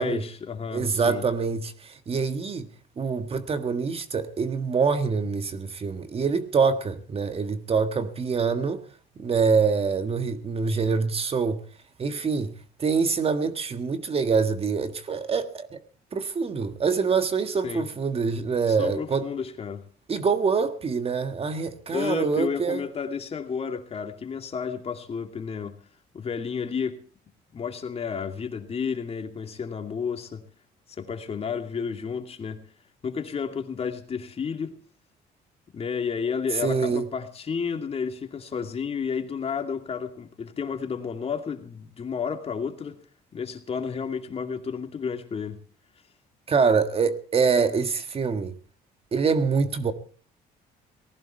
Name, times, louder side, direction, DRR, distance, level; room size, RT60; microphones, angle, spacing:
voice 1, 0.0-1.2 17.6-17.9 18.7-19.8 21.9-25.8 26.1-27.0 27.5-30.4 30.9-32.6 33.0-34.7 35.7-43.0 43.3-45.6, left 6 dB, 35° left, 2.6 m, -31 dB
voice 2, 0.7-2.7 3.0-8.8 9.2-11.6 12.0-12.5 12.8-15.8 16.1-19.3 20.1-22.8 36.6-37.1 46.5-48.6 49.1-49.9, right 5 dB, 35° right, 1.6 m, -25 dB
19.0 x 15.5 x 4.4 m
cardioid pair, 110°, 17 cm